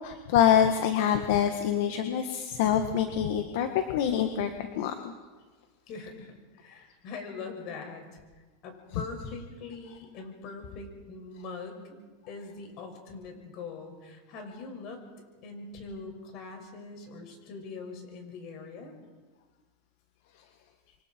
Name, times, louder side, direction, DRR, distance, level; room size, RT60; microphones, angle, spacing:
voice 1, 0.0-4.5 4.8-5.1, left 9 dB, 70° left, 6 dB, 1.7 m, -25 dB
voice 2, 5.9-11.9 12.3-15.0 15.4-18.9, left 4 dB, 50° left, 3 dB, 6.1 m, -42 dB
27.5 x 24.5 x 4.6 m, 1.3 s
supercardioid pair, 125°, 0 cm